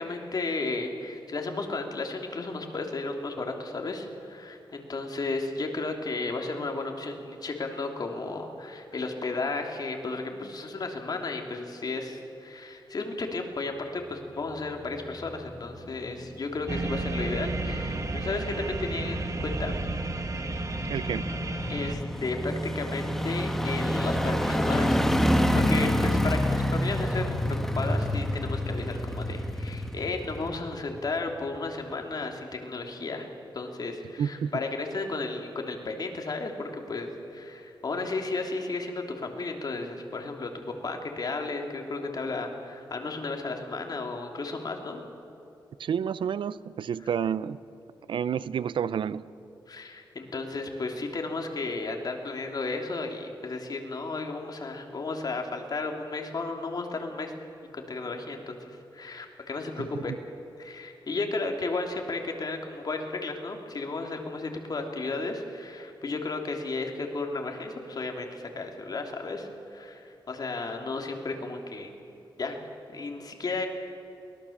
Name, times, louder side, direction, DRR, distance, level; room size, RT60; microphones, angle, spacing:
voice 1, 0.0-19.7 21.7-27.4 27.7-33.3 33.5-45.0 49.7-57.3 57.7-60.1 60.6-71.9 72.4-72.6 72.9-73.7, left 3 dB, 50° left, 3 dB, 3.0 m, -34 dB
sound 1, 14.7-31.2 31.6-31.7, equal, 5° left, 1.6 m, -29 dB
sound 2, 16.7-21.9, right 2 dB, 40° right, 1.9 m, -32 dB
voice 2, 20.8-21.3 34.2-34.5 45.8-47.6 48.1-49.3 59.8-60.2, right 8 dB, 80° right, 17 dB, 0.6 m, -30 dB
23.0 x 18.5 x 7.3 m, 2.8 s
cardioid pair, 85°, 8 cm